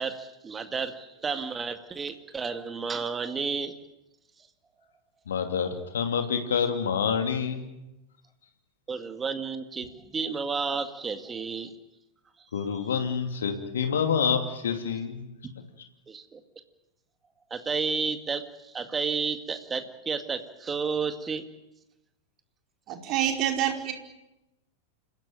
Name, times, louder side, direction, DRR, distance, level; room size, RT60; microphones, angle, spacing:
voice 1, 0.0-3.7 8.9-11.7 12.5-12.8 16.1-16.4 17.5-21.4, right 5 dB, 15° right, 8 dB, 2.1 m, -32 dB
voice 2, 5.3-7.7 12.5-15.3, left 6 dB, 65° left, 5 dB, 2.7 m, -27 dB
voice 3, 22.9-23.9, right 10 dB, 40° right, 2 dB, 4.9 m, -27 dB
28.5 x 16.5 x 9.0 m, 0.94 s
figure-of-eight pair, 90°, 0 cm